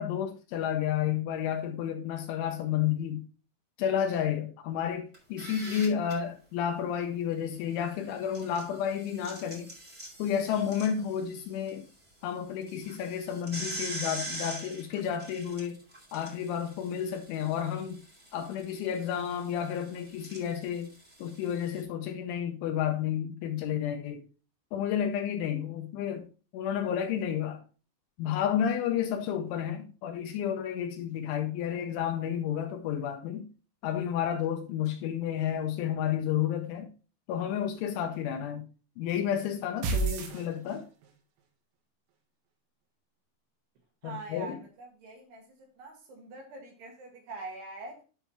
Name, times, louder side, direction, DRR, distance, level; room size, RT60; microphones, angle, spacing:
voice 1, 0.0-3.2 3.8-9.7 10.2-11.9 12.2-15.8 16.1-18.0 18.3-20.9 21.2-24.2 24.7-26.3 26.5-27.6 28.2-33.5 33.8-36.9 37.3-38.7 39.0-40.9 44.0-44.6, left 9 dB, 85° left, 2.9 m, -31 dB
sound 1, 5.1-6.1 8.1-11.7 12.1-12.2 12.6-21.8, right 1 dB, 25° right, 1.2 m, -43 dB
sound 2, 39.8-41.1, right 4 dB, 85° right, 4.2 m, -30 dB
voice 2, 44.0-48.0, right 3 dB, 65° right, 3.3 m, -44 dB
11.0 x 5.4 x 2.9 m
omnidirectional pair, 6.0 m